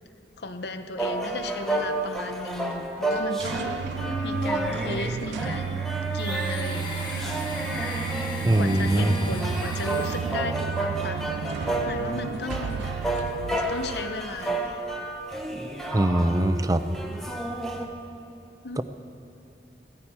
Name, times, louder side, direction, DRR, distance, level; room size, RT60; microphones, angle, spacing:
voice 1, 0.4-5.9 6.1-7.9 8.6-12.9 13.5-14.8 18.6-18.8, left 2 dB, 65° left, 9 dB, 0.8 m, -36 dB
sound 1, 1.0-17.9, right 1 dB, ahead, 1.0 m, -31 dB
sound 2, 3.1-14.8, right 7 dB, 80° right, 0.3 m, -33 dB
Domestic sounds home sounds, 6.1-10.6, left 2 dB, 25° left, 1.4 m, -38 dB
voice 2, 8.4-9.2 15.9-16.8 18.8-18.9, right 1 dB, 20° right, 10 dB, 0.5 m, -22 dB
17.0 x 14.0 x 4.3 m, 2.9 s
head